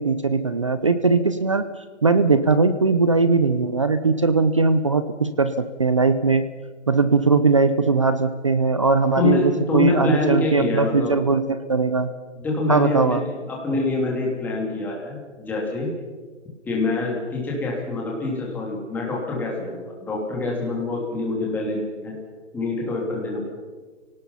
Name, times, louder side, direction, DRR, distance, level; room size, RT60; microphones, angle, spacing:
voice 1, 0.0-1.7 2.0-6.4 6.9-12.1 12.7-13.2, right 4 dB, 25° right, 12 dB, 0.6 m, -20 dB
voice 2, 9.2-11.1 12.4-15.9 16.7-22.1 22.5-23.4, left 2 dB, 5° left, -2 dB, 2.9 m, -25 dB
29.0 x 18.0 x 5.6 m, 1.4 s
hypercardioid pair, 170°, 36 cm